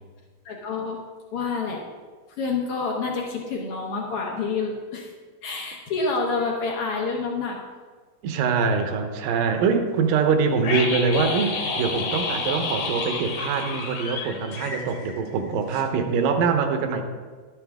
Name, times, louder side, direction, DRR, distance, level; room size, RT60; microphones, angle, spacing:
voice 1, 0.4-1.0 1.3-1.8 2.4-5.1 5.4-7.6, left 4 dB, 75° left, 0 dB, 1.3 m, -28 dB
voice 2, 8.2-17.0, right 5 dB, 75° right, 6 dB, 2.4 m, -24 dB
sound 1, 10.6-15.5 15.7-15.8, left 4 dB, 55° left, 1.9 m, -30 dB
12.0 x 9.8 x 3.5 m, 1.5 s
omnidirectional pair, 4.2 m